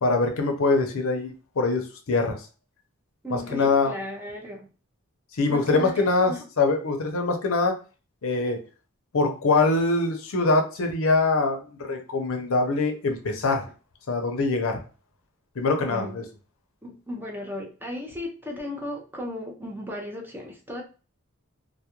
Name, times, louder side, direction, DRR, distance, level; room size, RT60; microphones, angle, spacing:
voice 1, 0.0-2.5 3.3-3.9 5.4-7.7 8.2-8.6 9.1-13.7 14.1-14.8 15.6-16.2, left 3 dB, 65° left, 4 dB, 0.6 m, -23 dB
voice 2, 3.2-4.7 5.5-6.4 15.9-16.1 16.8-20.8, left 1 dB, 10° right, 1 dB, 0.5 m, -35 dB
2.3 x 2.1 x 2.8 m, 0.34 s
head